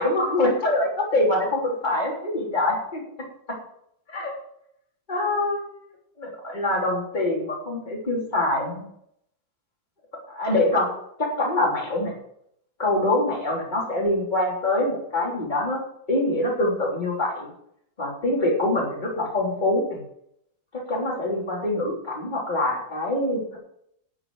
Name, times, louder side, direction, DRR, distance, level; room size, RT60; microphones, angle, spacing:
voice 1, 0.0-3.0 4.1-4.4 5.1-5.7 6.2-8.8 10.3-10.9 11.2-12.1 12.8-15.8 16.1-17.5 18.0-20.0 20.7-23.6, left 2 dB, 25° left, -3 dB, 3.5 m, -24 dB
12.0 x 6.9 x 7.7 m, 0.73 s
omnidirectional pair, 2.0 m